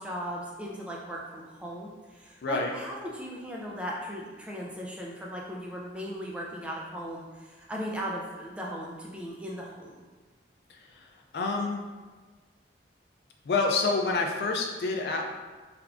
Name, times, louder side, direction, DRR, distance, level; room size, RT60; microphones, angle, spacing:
voice 1, 0.0-10.0, equal, 5° right, -3 dB, 0.3 m, -37 dB
voice 2, 2.4-2.7 10.7-11.8 13.4-15.2, left 3 dB, 65° left, 2 dB, 0.4 m, -28 dB
3.4 x 3.4 x 2.4 m, 1.4 s
head